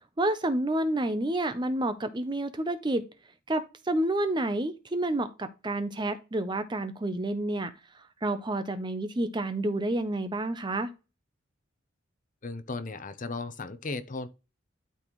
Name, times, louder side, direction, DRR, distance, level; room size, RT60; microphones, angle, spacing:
voice 1, 0.2-3.0 3.5-7.7 8.2-10.9, right 1 dB, 25° right, 0.6 m, -29 dB
voice 2, 12.4-14.3, left 3 dB, 40° left, 0.7 m, -36 dB
12.0 x 4.2 x 3.1 m
head